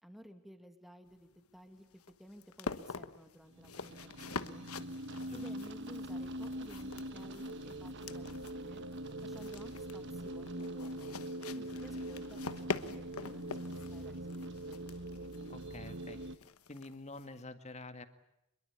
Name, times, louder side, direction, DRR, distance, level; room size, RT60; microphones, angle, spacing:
voice 1, 0.0-4.7 5.3-8.8 9.2-11.1 11.6-14.9, equal, ahead, 7 dB, 2.3 m, -55 dB
sound 1, 1.1-17.4, left 4 dB, 85° left, 1.3 m, -46 dB
sound 2, 3.6-16.4, right 1 dB, 55° right, 1.2 m, -43 dB
voice 2, 15.5-16.3 16.7-18.1, left 2 dB, 30° left, 9 dB, 2.0 m, -48 dB
25.5 x 22.5 x 8.5 m, 0.85 s
head